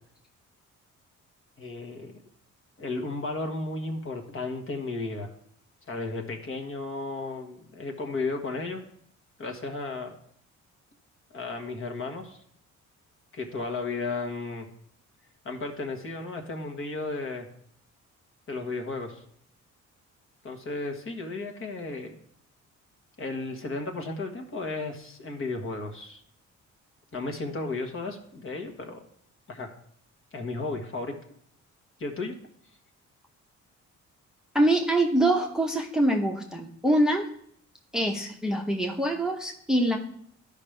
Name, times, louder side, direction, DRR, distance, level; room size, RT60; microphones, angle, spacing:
voice 1, 1.6-2.1 2.8-5.3 5.9-8.8 9.4-10.2 11.3-12.4 13.3-14.7 15.4-17.5 18.5-19.2 20.4-22.1 23.2-26.2 27.1-29.0 29.5-29.7 30.3-31.1 32.0-32.3, left 3 dB, 45° left, 3 dB, 1.4 m, -34 dB
voice 2, 34.5-37.2 37.9-40.0, right 1 dB, ahead, 1 dB, 0.9 m, -24 dB
12.0 x 5.2 x 3.3 m, 0.65 s
cardioid pair, 90°, 30 cm